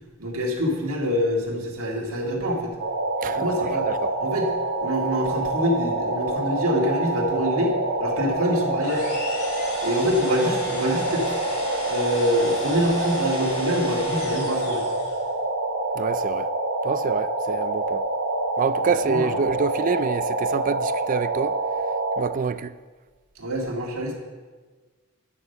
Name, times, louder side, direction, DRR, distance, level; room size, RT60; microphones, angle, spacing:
voice 1, 0.2-2.8 3.2-3.9 4.2-4.5 4.8-9.0 9.8-11.3 11.8-14.8 19.0-19.5 23.4-24.1, equal, 70° right, 2.2 m, -25 dB
sound 1, 2.8-22.2, right 2 dB, 85° right, 1.9 m, -26 dB
sound 2, 8.8-15.3, left 2 dB, 80° left, 3.3 m, -36 dB
voice 2, 15.9-16.5 16.8-18.0 18.6-21.6 22.2-22.8, right 5 dB, 40° right, 0.3 m, -27 dB
9.7 x 6.3 x 6.7 m
head